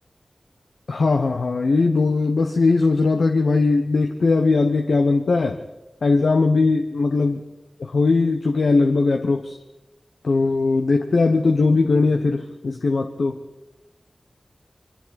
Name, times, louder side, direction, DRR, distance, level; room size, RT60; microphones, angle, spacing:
voice 1, 0.9-5.6 6.0-7.4 7.8-9.6 10.2-13.4, left 3 dB, 90° left, 4 dB, 1.1 m, -19 dB
28.0 x 23.5 x 4.3 m, 1.0 s
cardioid pair, 45°, 0 cm